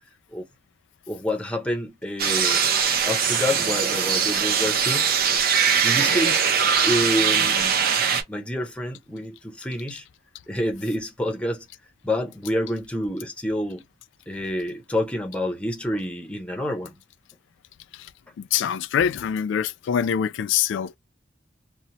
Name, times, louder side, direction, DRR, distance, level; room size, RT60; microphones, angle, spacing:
voice 1, 1.1-2.7 3.0-5.1 5.8-6.4 6.8-7.8 8.3-10.0 10.5-11.7 12.0-13.8 14.3-17.0, left 1 dB, 5° left, 0.6 m, -28 dB
sound 1, 2.2-8.2, right 7 dB, 50° right, 0.6 m, -21 dB
voice 2, 18.4-21.0, left 8 dB, 70° left, 0.3 m, -24 dB
2.8 x 2.0 x 2.8 m
head